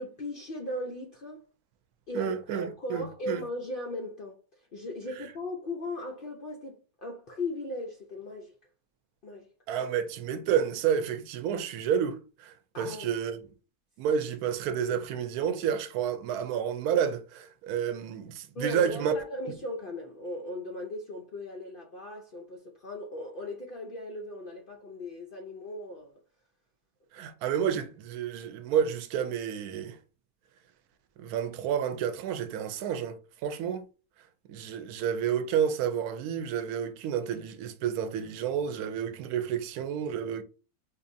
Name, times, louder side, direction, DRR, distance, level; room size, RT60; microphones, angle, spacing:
voice 1, 0.0-1.4 2.1-8.6 9.2-9.5 12.7-13.2 18.5-26.2, left 1 dB, 85° left, 0.4 m, -38 dB
voice 2, 2.1-3.4 9.7-13.4 14.0-19.1 27.1-30.0 31.2-33.2 33.4-33.8 34.5-40.4, right 8 dB, 80° right, 1.1 m, -30 dB
4.6 x 2.6 x 2.6 m
omnidirectional pair, 1.6 m